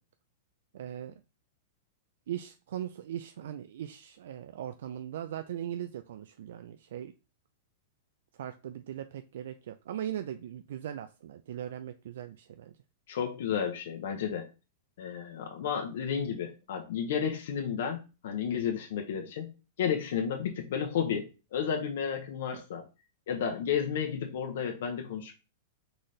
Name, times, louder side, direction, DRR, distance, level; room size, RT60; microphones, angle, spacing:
voice 1, 0.7-1.1 2.3-7.1 8.3-12.7 22.5-22.6, right 10 dB, 75° right, 9 dB, 0.3 m, -39 dB
voice 2, 13.1-14.5 15.0-19.5 19.8-22.8 23.3-25.4, left 7 dB, 70° left, 2 dB, 0.8 m, -32 dB
4.0 x 4.0 x 3.2 m, 0.31 s
supercardioid pair, 155°, 0 cm